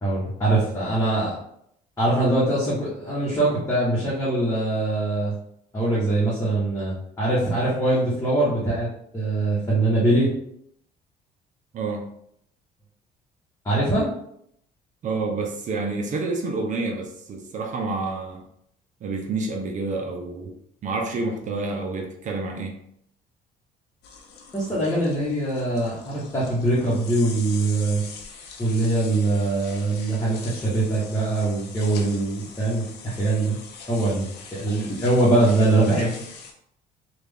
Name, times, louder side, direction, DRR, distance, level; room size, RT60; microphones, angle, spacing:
voice 1, 0.0-1.3 2.0-5.3 5.7-8.9 9.1-10.3 13.6-14.1 24.5-28.0 28.6-33.6 33.9-34.2 34.5-36.1, right 2 dB, 20° left, -9 dB, 1.2 m, -22 dB
voice 2, 11.7-12.1 15.0-18.4 19.0-20.5 20.8-22.8, right 3 dB, 45° right, 2 dB, 0.6 m, -28 dB
sound 1, 24.0-36.5, left 5 dB, 80° left, 0.7 m, -43 dB
3.4 x 2.4 x 3.5 m, 0.72 s
cardioid pair, 110°, 17 cm